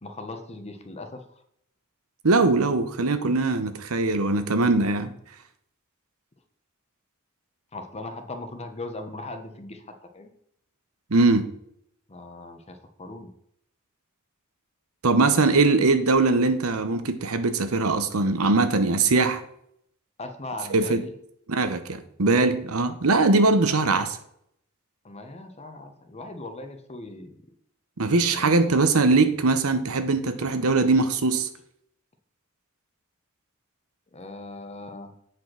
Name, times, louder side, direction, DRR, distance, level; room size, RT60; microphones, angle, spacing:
voice 1, 0.0-1.2 7.7-9.9 10.1-10.3 12.1-13.3 20.2-21.1 25.0-27.4 28.3-28.8 34.1-35.1, left 2 dB, 30° left, 7 dB, 1.1 m, -38 dB
voice 2, 2.2-5.1 11.1-11.5 15.0-19.4 20.7-21.0 21.5-24.2 28.0-31.5, right 3 dB, 90° right, 10 dB, 0.9 m, -21 dB
8.2 x 5.3 x 5.9 m, 0.71 s
head